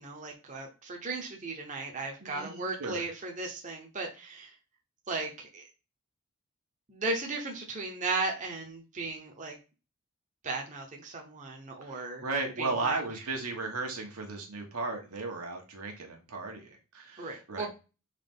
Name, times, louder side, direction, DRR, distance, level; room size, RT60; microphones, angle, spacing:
voice 1, 0.0-4.5 5.1-5.6 6.9-9.6 10.4-12.2 12.6-13.0 17.2-17.7, right 3 dB, 35° right, 0 dB, 0.8 m, -36 dB
voice 2, 2.2-3.1 11.8-17.7, right 3 dB, 85° right, 2 dB, 1.2 m, -35 dB
4.0 x 3.1 x 3.5 m, 0.31 s
head